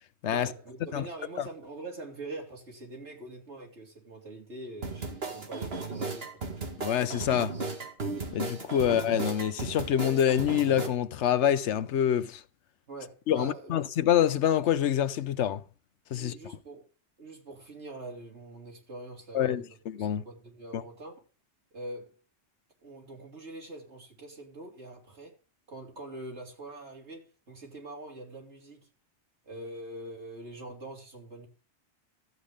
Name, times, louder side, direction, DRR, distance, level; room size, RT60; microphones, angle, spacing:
voice 1, 0.3-6.3 12.9-13.8 16.1-16.9 17.2-21.2 21.7-22.2 22.8-25.3 25.7-28.9 29.4-31.5, right 2 dB, 80° right, 3.5 m, -44 dB
sound 1, 4.8-10.9, right 3 dB, 60° right, 1.9 m, -35 dB
voice 2, 6.8-7.5 8.3-12.4 13.3-15.6 16.1-16.3 19.3-20.2 20.7-20.8, left 10 dB, 85° left, 1.0 m, -26 dB
13.0 x 8.5 x 3.6 m
omnidirectional pair, 1.1 m